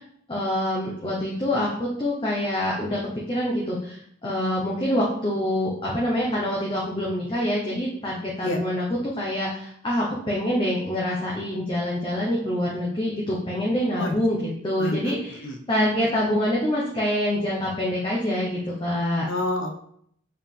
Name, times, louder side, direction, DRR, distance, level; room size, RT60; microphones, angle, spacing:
voice 1, 0.3-3.0 3.3-8.8 9.2-15.4 15.7-19.3, left 1 dB, 25° left, -4 dB, 1.0 m, -26 dB
voice 2, 14.8-15.6 19.2-19.8, left 1 dB, 85° left, 4 dB, 1.0 m, -29 dB
7.1 x 3.7 x 3.7 m, 0.67 s
head